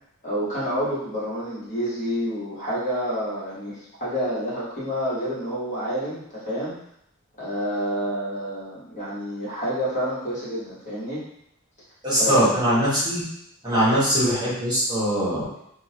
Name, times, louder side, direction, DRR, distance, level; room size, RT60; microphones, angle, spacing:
voice 1, 0.2-6.8 7.4-11.2 12.2-12.4 13.7-14.0, equal, 35° left, -9 dB, 1.4 m, -28 dB
voice 2, 12.0-13.2 13.6-15.6, equal, 20° right, -10 dB, 1.4 m, -21 dB
3.8 x 2.5 x 2.9 m, 0.74 s
head